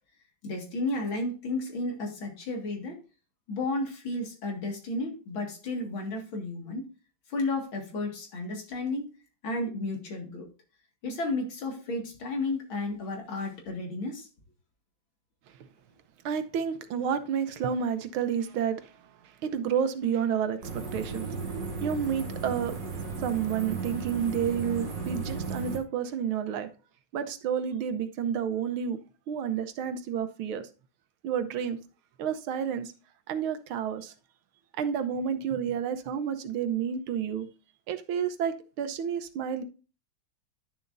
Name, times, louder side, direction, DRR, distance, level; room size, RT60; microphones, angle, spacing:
voice 1, 0.4-3.0 3.5-6.9 7.3-9.1 9.4-10.5 11.0-14.3, left 2 dB, 70° left, 2.8 m, -32 dB
voice 2, 16.2-19.0 19.4-21.3 21.8-22.8 23.2-26.7 27.1-29.0 29.3-30.7 31.2-31.8 32.2-32.9 33.3-34.1 34.8-37.5 37.9-39.6, right 8 dB, 75° right, 1.7 m, -30 dB
sound 1, 20.6-25.8, right 4 dB, 60° right, 2.6 m, -35 dB
11.0 x 7.0 x 2.6 m
omnidirectional pair, 2.3 m